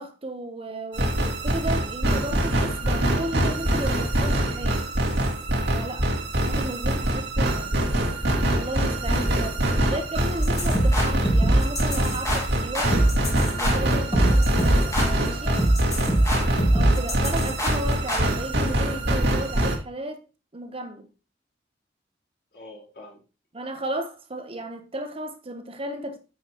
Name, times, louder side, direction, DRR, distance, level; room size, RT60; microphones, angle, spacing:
voice 1, 0.0-4.9 5.7-7.8 8.5-13.0 13.5-14.9 15.2-15.6 16.7-20.3 20.5-21.1 23.5-26.2, right 1 dB, 35° right, 1.0 m, -34 dB
sound 1, 0.9-19.8, right 1 dB, 75° right, 2.3 m, -24 dB
voice 2, 9.0-10.0 16.2-16.5 22.5-23.2, left 1 dB, 65° left, 4.3 m, -45 dB
sound 2, 10.4-18.3, right 1 dB, 20° left, 2.0 m, -23 dB
9.3 x 7.7 x 3.0 m
head